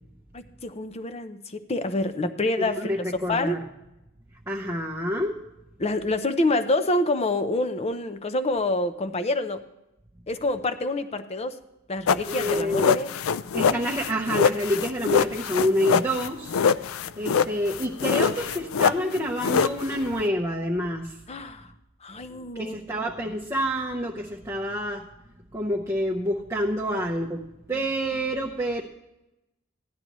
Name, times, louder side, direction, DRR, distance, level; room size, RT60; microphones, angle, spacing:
voice 1, 0.3-2.9 3.3-3.6 5.8-9.6 10.3-11.6 11.9-13.1 21.3-21.7 22.0-22.7 27.7-27.8, left 2 dB, 30° left, 10 dB, 0.7 m, -27 dB
voice 2, 2.6-3.6 4.5-5.3 12.3-13.0 13.5-16.6 17.2-21.1 22.5-25.0 25.5-27.4 27.7-28.8, equal, 15° right, -2 dB, 0.8 m, -27 dB
sound 1, 12.1-20.3, left 6 dB, 90° left, 0.4 m, -24 dB
15.5 x 11.5 x 3.1 m, 0.93 s
head